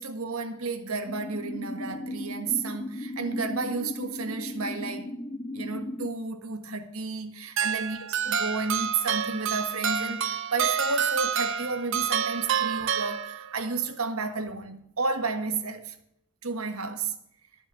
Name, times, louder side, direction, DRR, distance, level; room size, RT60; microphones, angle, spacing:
voice 1, 0.0-5.1 5.5-15.9 16.4-17.1, right 4 dB, 85° right, 1.6 m, -32 dB
sound 1, 1.1-6.1, left 1 dB, 15° left, 0.5 m, -36 dB
sound 2, 7.6-13.7, right 7 dB, 60° right, 0.8 m, -28 dB
13.0 x 6.1 x 8.8 m
head